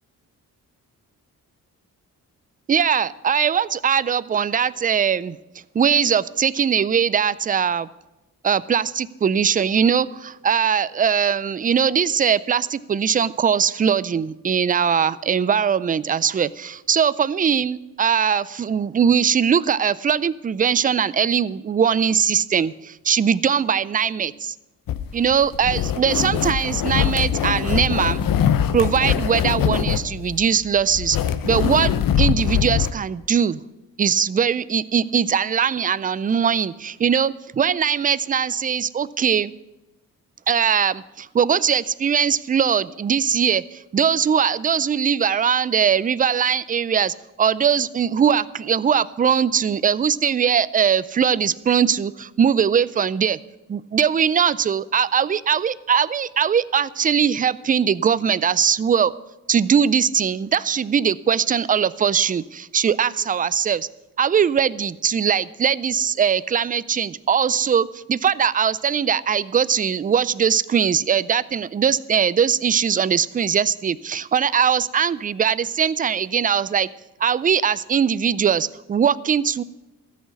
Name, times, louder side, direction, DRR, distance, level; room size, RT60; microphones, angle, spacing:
voice 1, 2.7-5.4 5.7-7.9 8.4-24.5 25.1-28.2 28.7-31.2 31.4-33.6 34.0-39.5 40.5-53.4 53.7-59.1 59.5-63.9 64.2-76.9 77.2-79.6, right 7 dB, 25° right, 18 dB, 0.3 m, -21 dB
sound 1, 24.9-32.9, left 9 dB, 70° left, 0.8 m, -22 dB
14.0 x 6.4 x 8.2 m, 1.0 s
cardioid pair, 105°, 35 cm